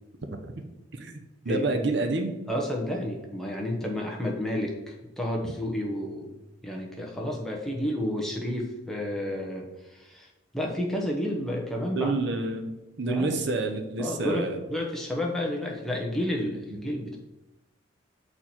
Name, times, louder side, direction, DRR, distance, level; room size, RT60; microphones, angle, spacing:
voice 1, 1.4-2.3 11.9-12.7 13.0-14.6, right 3 dB, 55° right, 6 dB, 0.7 m, -28 dB
voice 2, 2.5-6.3 6.6-10.3 10.5-12.1 13.0-13.4 14.0-17.2, left 1 dB, ahead, -1 dB, 0.9 m, -31 dB
7.0 x 4.4 x 4.4 m, 1.0 s
head